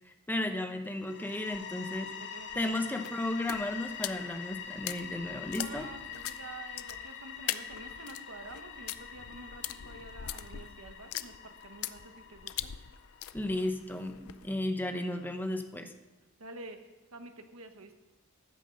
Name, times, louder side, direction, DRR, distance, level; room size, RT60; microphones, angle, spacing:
voice 1, 0.1-2.1 2.5-5.9 13.3-15.9, left 1 dB, 10° left, 6 dB, 0.9 m, -34 dB
sound 1, 1.0-13.7, left 7 dB, 60° left, 1.2 m, -45 dB
sound 2, 1.5-14.5, left 11 dB, 80° left, 0.5 m, -43 dB
voice 2, 2.1-2.7 5.5-12.7 16.4-16.8 17.1-17.9, right 3 dB, 75° right, 6 dB, 1.4 m, -48 dB
14.0 x 9.1 x 5.5 m, 1.1 s
head